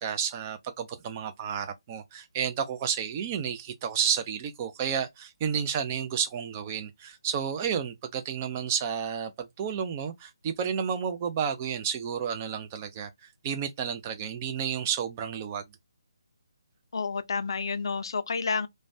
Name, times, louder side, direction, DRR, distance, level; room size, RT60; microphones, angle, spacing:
voice 1, 0.0-15.6, right 7 dB, 25° right, 0.4 m, -31 dB
voice 2, 16.9-18.7, left 4 dB, 65° left, 0.4 m, -30 dB
3.1 x 2.2 x 2.6 m
hypercardioid pair, 155°, 3 cm